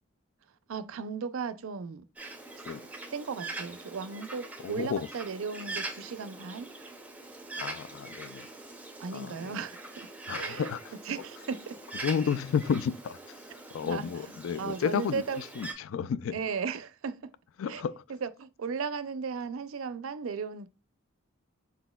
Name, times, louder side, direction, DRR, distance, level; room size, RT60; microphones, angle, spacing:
voice 1, 0.7-2.0 3.1-6.7 9.0-9.9 10.3-10.7 11.1-11.8 13.8-14.3 14.6-15.4 16.3-17.3 17.7-17.8 18.1-20.7, right 5 dB, 75° right, 0.4 m, -36 dB
Bird, 2.2-15.7, right 2 dB, 5° right, 0.5 m, -43 dB
voice 2, 4.6-5.1 7.6-8.5 9.1-9.5 10.3-10.9 12.0-13.4 13.7-16.4 17.6-18.0, left 7 dB, 70° left, 0.3 m, -32 dB
4.4 x 4.1 x 2.2 m
head